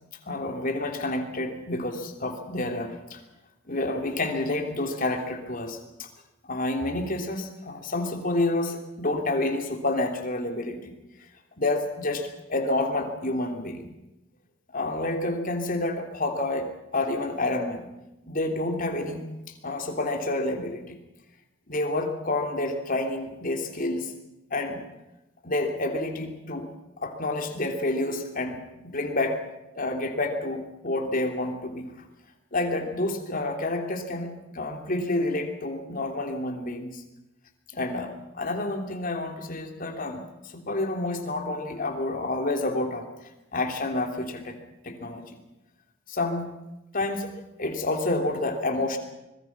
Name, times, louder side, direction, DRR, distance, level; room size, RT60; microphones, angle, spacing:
voice 1, 0.3-3.2 3.7-6.1 6.5-10.9 11.6-13.9 14.7-17.9 18.3-19.2 19.6-21.0 21.7-24.1 24.5-24.9 25.4-26.7 27.0-29.5 29.7-31.9 32.5-37.0 37.7-43.1 43.5-44.6 44.8-45.4 46.1-46.5 46.9-49.0, left 2 dB, 40° left, 4 dB, 3.2 m, -29 dB
25.5 x 21.5 x 6.1 m, 0.96 s
head